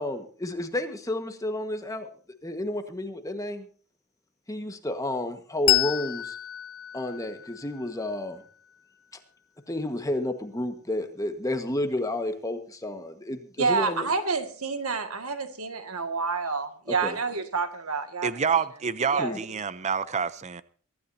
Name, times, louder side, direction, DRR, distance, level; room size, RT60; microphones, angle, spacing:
voice 1, 0.0-2.1 2.4-3.7 4.5-6.4 6.9-8.4 9.7-14.1 17.0-17.2 19.2-19.4, left 1 dB, 15° left, 1.4 m, -31 dB
Bell, 5.7-8.7, left 17 dB, 75° left, 1.1 m, -29 dB
voice 2, 13.6-18.3 19.1-19.3, right 4 dB, 90° right, 1.9 m, -28 dB
voice 3, 18.2-20.6, right 6 dB, 30° right, 0.6 m, -27 dB
24.0 x 13.0 x 2.7 m
head